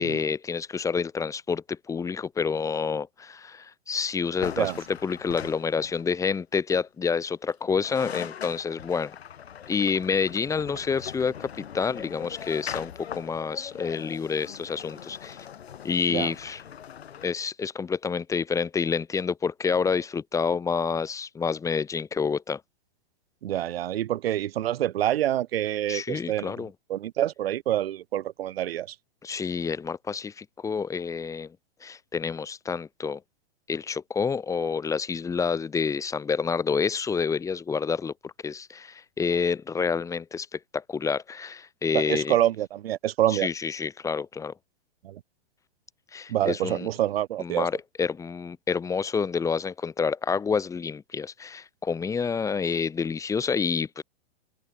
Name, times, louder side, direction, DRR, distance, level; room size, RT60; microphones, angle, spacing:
voice 1, 0.0-9.1 9.7-15.4 15.8-16.6 17.2-22.6 25.9-26.7 29.2-31.6 31.8-33.2 33.7-42.4 43.3-44.5 46.1-46.9 47.4-54.0, left 5 dB, 10° left, 2.1 m, -28 dB
sound 1, 4.4-6.2 7.5-7.6 7.8-17.3, left 9 dB, 80° left, 4.6 m, -41 dB
voice 2, 23.4-26.5 26.9-28.9 41.9-43.5 45.0-45.2 46.3-47.7, right 12 dB, 70° right, 1.0 m, -26 dB
hypercardioid pair, 150°, 31 cm